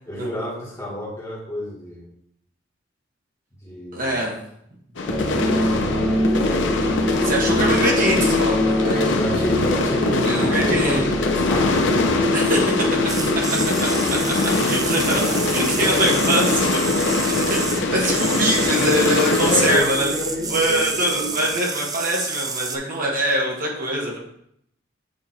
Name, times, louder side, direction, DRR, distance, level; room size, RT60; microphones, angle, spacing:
voice 1, 0.1-2.1 3.6-4.2 5.2-6.7 8.8-12.9 19.3-21.3, left 1 dB, 15° left, -5 dB, 1.7 m, -30 dB
voice 2, 3.9-4.4 7.2-9.1 10.2-11.0 12.3-12.6 13.0-13.2 14.1-15.2 15.5-16.7 17.2-20.1 20.5-24.2, right 1 dB, 45° right, -2 dB, 1.3 m, -23 dB
sound 1, 5.0-19.8, left 3 dB, 65° left, 0.6 m, -23 dB
sound 2, 5.1-21.5, left 1 dB, ahead, 1.0 m, -26 dB
sound 3, 13.1-22.8, right 4 dB, 20° right, 0.4 m, -29 dB
8.3 x 3.0 x 4.2 m, 0.72 s
head